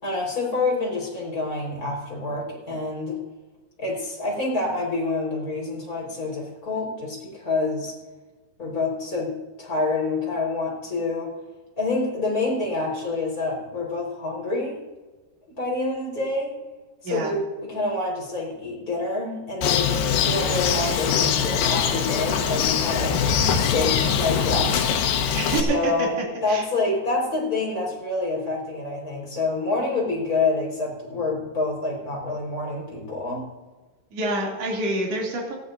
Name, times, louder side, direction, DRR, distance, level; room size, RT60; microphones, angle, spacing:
voice 1, 0.0-3.2 3.8-7.9 8.6-11.3 11.8-14.8 15.5-16.6 17.1-23.2 23.5-25.0 25.5-33.5, left 3 dB, 20° left, -2 dB, 4.8 m, -27 dB
Bird, 19.6-25.6, left 7 dB, 85° left, 3.4 m, -22 dB
voice 2, 25.3-26.1 26.5-26.7 34.1-35.6, right 2 dB, 40° right, -2 dB, 3.5 m, -27 dB
19.5 x 15.0 x 2.7 m, 1.2 s
omnidirectional pair, 4.8 m